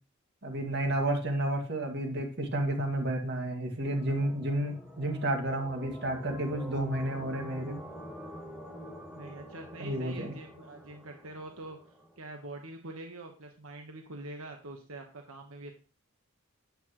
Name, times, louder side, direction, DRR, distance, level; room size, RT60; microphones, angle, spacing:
voice 1, 0.4-7.8 9.8-10.3, right 1 dB, 50° right, 3 dB, 2.0 m, -31 dB
sound 1, 3.9-12.2, equal, 5° right, 1.6 m, -46 dB
voice 2, 9.1-15.7, right 2 dB, 80° right, 4 dB, 1.2 m, -45 dB
10.0 x 8.5 x 3.1 m, 0.35 s
head